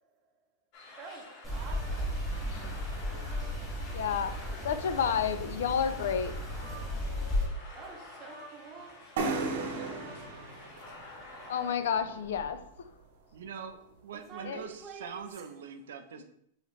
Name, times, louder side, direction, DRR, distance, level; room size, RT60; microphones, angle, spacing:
sound 1, 0.7-11.7, left 1 dB, 40° left, 1.1 m, -49 dB
voice 1, 1.0-2.3 7.7-10.2 14.1-15.5, right 4 dB, 25° right, 0.6 m, -48 dB
sound 2, 1.4-7.4, left 1 dB, 10° left, 1.8 m, -35 dB
voice 2, 3.9-4.4 4.6-6.3 11.5-12.6 14.4-14.6 16.2-16.3, left 7 dB, 80° left, 0.4 m, -30 dB
sound 3, 9.2-12.8, right 3 dB, 60° right, 0.8 m, -36 dB
voice 3, 13.3-16.2, right 7 dB, 85° right, 0.6 m, -43 dB
5.7 x 2.9 x 3.1 m
supercardioid pair, 155°, 0 cm